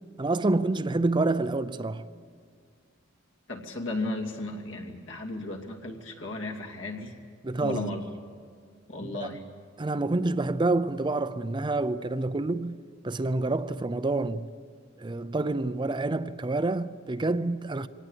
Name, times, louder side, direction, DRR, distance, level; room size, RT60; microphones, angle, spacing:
voice 1, 0.2-2.0 7.4-7.9 9.0-9.4 9.8-12.8 13.0-14.5 15.0-17.9, right 2 dB, 25° right, 0.5 m, -28 dB
voice 2, 3.5-7.1 7.6-8.0 8.9-9.4, left 2 dB, 75° left, 2.6 m, -35 dB
24.0 x 18.0 x 8.2 m
head